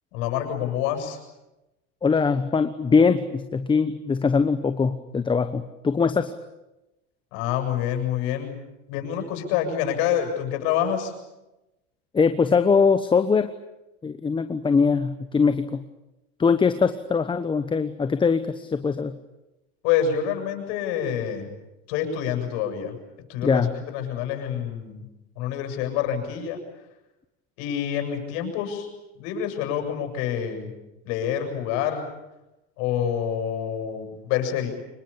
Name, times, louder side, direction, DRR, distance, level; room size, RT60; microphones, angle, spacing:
voice 1, 0.1-1.2 7.3-8.5 8.9-11.1 19.8-21.5 21.9-22.9 23.3-25.0 25.4-26.6 27.6-28.9 29.2-30.7 31.0-32.1 32.8-34.7, left 9 dB, 65° left, 5 dB, 7.7 m, -27 dB
voice 2, 2.0-6.3 12.1-13.5 14.0-15.8 16.4-19.2 23.4-23.7, left 5 dB, 15° left, 10 dB, 1.0 m, -22 dB
26.0 x 22.0 x 8.7 m, 0.97 s
supercardioid pair, 130°, 32 cm